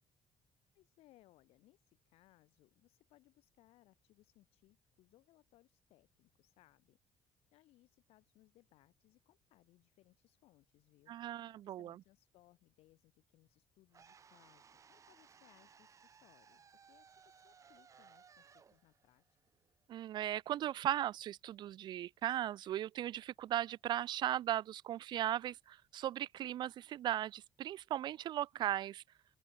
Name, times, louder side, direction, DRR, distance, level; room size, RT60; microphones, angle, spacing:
voice 1, 0.7-7.0 7.3-19.4, left 17 dB, 90° left, 6.7 m, -69 dB
voice 2, 11.1-12.0 19.9-29.0, right 12 dB, 50° right, 0.4 m, -37 dB
sound 1, 13.9-20.0, right 6 dB, 35° right, 3.2 m, -63 dB
open air
cardioid pair, 150°, 10 cm